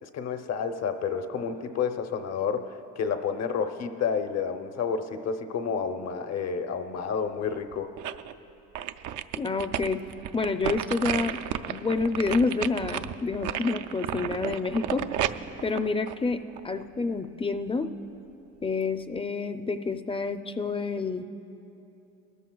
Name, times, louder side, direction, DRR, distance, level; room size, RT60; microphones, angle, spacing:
voice 1, 0.0-7.9, left 6 dB, 60° left, 7 dB, 0.8 m, -30 dB
sound 1, 7.5-8.3 8.7-16.8 17.2-17.3, right 10 dB, 75° right, 0.5 m, -33 dB
voice 2, 9.4-10.0 10.3-11.4 11.7-15.0 15.6-17.9 18.6-21.2, left 4 dB, 20° left, 9 dB, 0.5 m, -28 dB
21.0 x 13.5 x 2.3 m, 2.9 s
cardioid pair, 90°, 30 cm